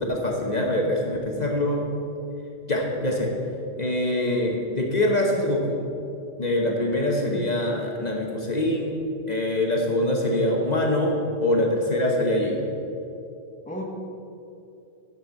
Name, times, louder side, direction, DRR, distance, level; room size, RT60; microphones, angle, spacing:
voice 1, 0.0-1.9 2.7-3.3 3.8-5.8 6.4-8.9 9.3-12.7, left 1 dB, 40° left, 0 dB, 1.0 m, -24 dB
voice 2, 6.8-7.4 13.7-14.0, left 1 dB, 10° left, 0 dB, 0.9 m, -36 dB
7.2 x 6.6 x 8.0 m, 2.7 s
omnidirectional pair, 1.1 m